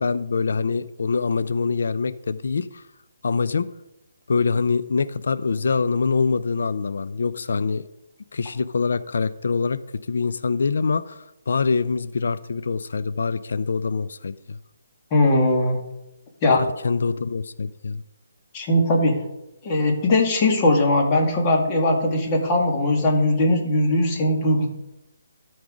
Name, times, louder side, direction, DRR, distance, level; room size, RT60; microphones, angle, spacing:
voice 1, 0.0-2.8 3.2-3.7 4.3-7.9 8.3-9.8 10.1-14.6 16.5-18.0, left 4 dB, 70° left, 14 dB, 0.5 m, -24 dB
voice 2, 15.1-15.8 16.4-16.6 18.5-19.2 19.6-24.7, left 1 dB, 25° left, 0 dB, 2.0 m, -20 dB
13.0 x 4.7 x 5.0 m, 0.92 s
hypercardioid pair, 155°, 0 cm